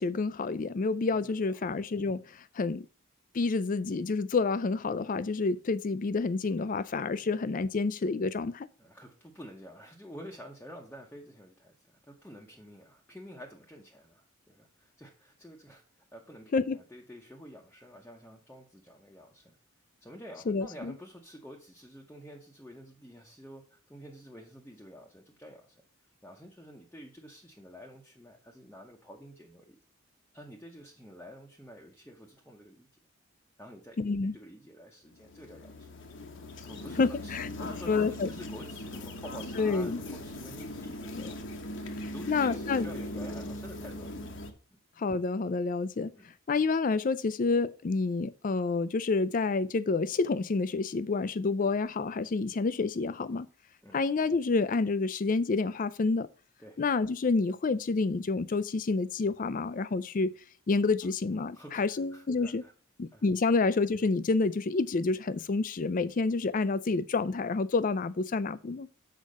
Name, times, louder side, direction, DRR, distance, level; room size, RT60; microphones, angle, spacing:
voice 1, 0.0-2.9 3.3-8.7 16.5-16.8 20.5-20.9 34.0-34.3 37.0-37.5 37.9-38.3 39.6-40.0 41.1-41.3 42.0-42.9 45.0-46.1 46.5-53.5 53.9-56.3 56.8-60.3 60.7-62.6 63.0-68.9, left 3 dB, 40° left, 0.4 m, -29 dB
voice 2, 1.2-1.6 7.2-7.3 8.8-19.5 20.0-25.7 26.2-29.8 30.3-32.9 33.6-34.0 34.3-35.9 36.7-44.3 44.7-44.8 46.2-46.3 53.8-54.0 56.6-56.8 61.5-62.7 63.1-63.2, equal, 10° left, 0.8 m, -49 dB
sound 1, 35.1-44.5, left 1 dB, 60° left, 1.1 m, -40 dB
6.5 x 4.8 x 5.2 m
head